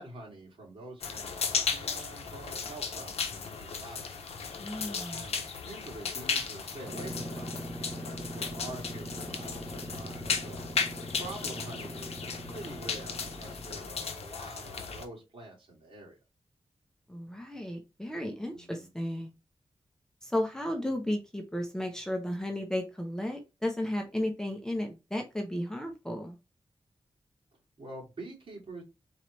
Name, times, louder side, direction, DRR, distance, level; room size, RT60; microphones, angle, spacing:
voice 1, 0.0-4.1 5.1-10.7 11.2-16.2 18.5-18.9 27.8-28.8, right 2 dB, 60° right, -3 dB, 2.4 m, -46 dB
sound 1, 1.0-15.0, left 5 dB, 85° left, 0.6 m, -36 dB
voice 2, 4.6-5.2 17.1-19.3 20.2-26.4, left 1 dB, 5° left, 2 dB, 0.8 m, -34 dB
sound 2, 6.7-14.1, equal, 15° right, 1.3 m, -42 dB
3.9 x 3.0 x 3.1 m, 0.26 s
wide cardioid pair, 85°, 10 cm